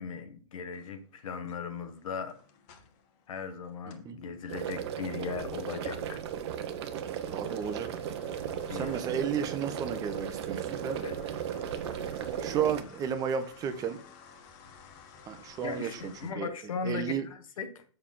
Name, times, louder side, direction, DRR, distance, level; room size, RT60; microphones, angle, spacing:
voice 1, 0.0-2.4 3.3-6.3 8.7-9.0 11.0-11.2 15.6-17.8, left 6 dB, 90° left, 7 dB, 1.4 m, -38 dB
sound 1, 0.7-4.1 4.5-16.3, left 6 dB, 40° left, 1.2 m, -56 dB
sound 2, 4.5-12.8, right 9 dB, 55° right, 0.9 m, -36 dB
voice 2, 7.3-7.9 8.7-11.0 12.4-14.0 15.3-16.5 16.8-17.3, right 7 dB, 20° right, 9 dB, 0.8 m, -33 dB
6.8 x 6.5 x 3.8 m, 0.42 s
supercardioid pair, 155°, 17 cm